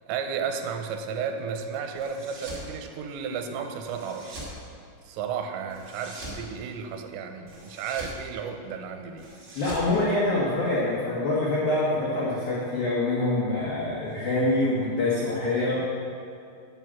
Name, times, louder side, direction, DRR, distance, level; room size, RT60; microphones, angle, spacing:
voice 1, 0.0-4.4 5.0-9.3 15.5-15.9, right 6 dB, 80° right, 5 dB, 2.9 m, -33 dB
sound 1, 2.0-2.7 3.8-4.6 5.7-6.4 7.5-8.2 9.2-10.7, right 1 dB, 50° right, 1.4 m, -42 dB
voice 2, 9.6-15.9, left 2 dB, 70° left, -7 dB, 1.8 m, -25 dB
7.6 x 6.1 x 7.0 m, 2.4 s
omnidirectional pair, 5.2 m